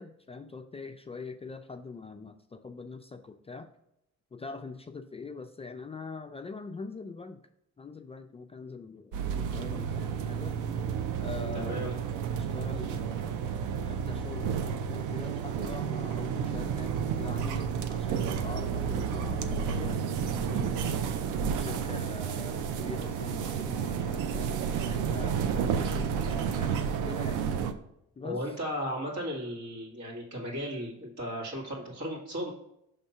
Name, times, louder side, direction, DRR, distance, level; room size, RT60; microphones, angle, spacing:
voice 1, 0.0-3.7 4.3-7.4 7.8-10.5 11.2-11.9 12.3-13.4 13.9-21.1 21.6-27.6 28.2-28.5, left 4 dB, 20° left, 6 dB, 0.4 m, -43 dB
sound 1, 9.1-27.7, right 7 dB, 90° right, 0.6 m, -31 dB
voice 2, 11.5-11.9 28.2-32.5, equal, 65° right, -2 dB, 2.3 m, -35 dB
5.8 x 3.5 x 5.5 m, 0.81 s
cardioid pair, 90°, 30 cm